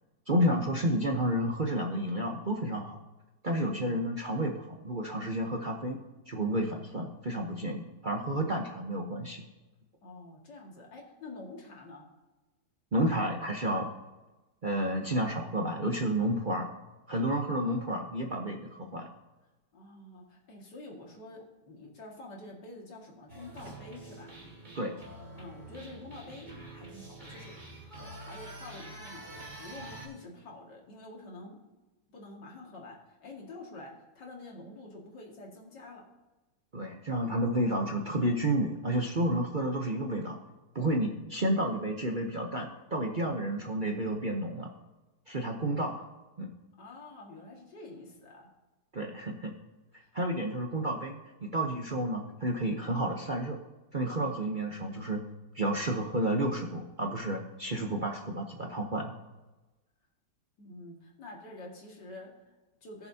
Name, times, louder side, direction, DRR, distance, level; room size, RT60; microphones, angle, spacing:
voice 1, 0.3-3.0 3.4-6.0 6.3-9.4 12.9-13.9 14.6-16.7 17.1-19.1 24.7-24.9 36.7-40.4 40.7-44.7 45.3-46.0 46.4-46.5 48.9-49.5 50.1-53.6 53.9-55.2 55.5-59.1, right 1 dB, 40° right, 1 dB, 0.7 m, -31 dB
voice 2, 10.0-12.1 19.7-24.3 25.4-27.6 28.0-31.6 32.1-36.0 46.8-48.5 50.0-50.1 60.6-63.1, left 2 dB, 80° left, -1 dB, 2.6 m, -47 dB
sound 1, 23.3-30.1, right 1 dB, 25° right, 2.4 m, -46 dB
19.0 x 7.0 x 2.8 m, 1.1 s
omnidirectional pair, 1.9 m